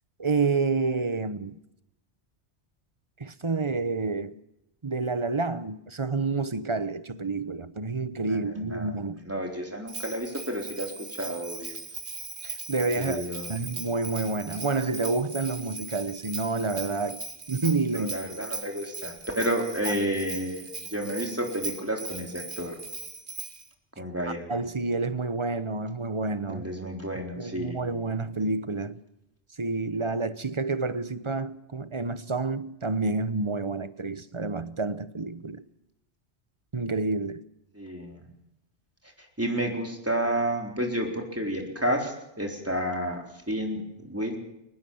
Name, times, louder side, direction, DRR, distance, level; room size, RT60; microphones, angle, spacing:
voice 1, 0.2-1.6 3.2-4.4 4.8-9.2 12.4-13.2 13.5-18.1 19.9-20.0 24.5-26.6 27.4-29.0 29.6-35.6 36.7-37.4, right 3 dB, 30° right, 0.9 m, -29 dB
voice 2, 8.2-11.8 13.0-13.7 17.9-22.8 24.0-24.5 26.5-27.9 37.8-38.3 39.4-44.4, equal, 10° right, 4.1 m, -31 dB
Bell, 9.9-23.7, right 3 dB, 45° right, 1.8 m, -39 dB
23.5 x 19.5 x 7.2 m
omnidirectional pair, 1.2 m